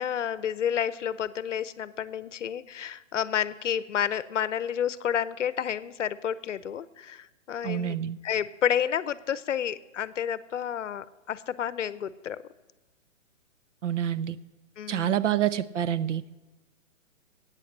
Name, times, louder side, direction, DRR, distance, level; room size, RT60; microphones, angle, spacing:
voice 1, 0.0-8.0 8.2-12.4 14.8-15.3, left 9 dB, 70° left, 17 dB, 0.7 m, -30 dB
voice 2, 7.6-8.2 13.8-14.4 14.9-16.2, right 10 dB, 70° right, 16 dB, 0.7 m, -27 dB
14.5 x 9.1 x 6.6 m, 1.2 s
hypercardioid pair, 175°, 39 cm